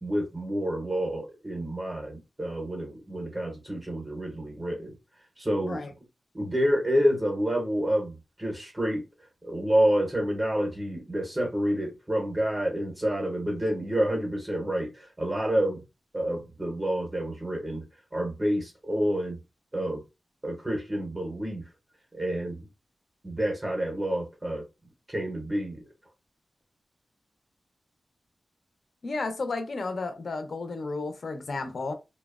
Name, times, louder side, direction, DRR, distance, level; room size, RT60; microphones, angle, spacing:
voice 1, 0.0-5.0 5.4-5.8 6.3-9.0 9.4-15.8 16.1-17.8 18.1-19.4 19.7-20.0 20.4-21.6 22.1-22.7 23.2-24.6 25.1-25.9, equal, 20° right, 0.5 m, -28 dB
voice 2, 29.0-31.9, left 3 dB, 55° left, 0.4 m, -32 dB
2.7 x 2.0 x 2.2 m
wide cardioid pair, 155°, 0 cm